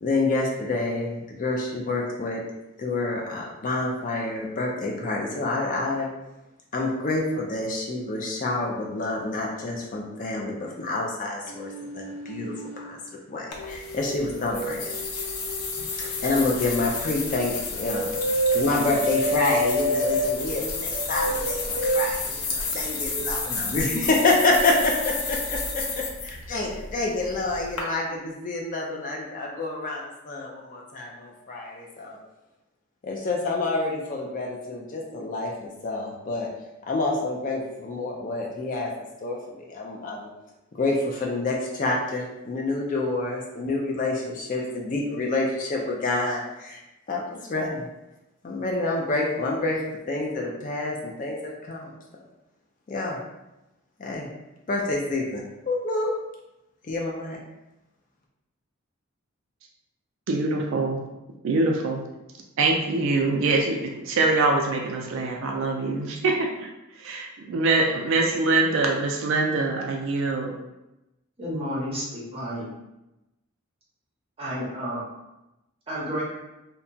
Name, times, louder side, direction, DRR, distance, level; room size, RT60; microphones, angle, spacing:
voice 1, 0.0-2.4 2.8-6.1 6.7-14.8 15.1-15.3 16.0-18.1 18.5-32.2 33.0-36.5 36.9-38.9 39.2-40.3 40.7-46.8 47.1-47.9 48.4-49.8 50.1-51.9 52.9-53.2 54.0-54.3 54.7-56.1 56.9-57.4, left 2 dB, 35° left, -1 dB, 0.4 m, -28 dB
sound 1, 11.5-12.9 13.5-16.9 17.7-20.3 20.9-22.1, right 1 dB, 55° left, 1.0 m, -29 dB
sound 2, 13.5-27.8, left 4 dB, 85° left, 0.6 m, -32 dB
voice 2, 60.3-61.0 61.4-62.0 62.6-66.7 67.0-70.5, right 3 dB, 60° right, 1 dB, 0.3 m, -24 dB
voice 3, 71.4-72.6 74.4-75.1 75.9-76.2, equal, 25° right, -7 dB, 0.8 m, -31 dB
2.8 x 2.2 x 2.6 m, 0.96 s
head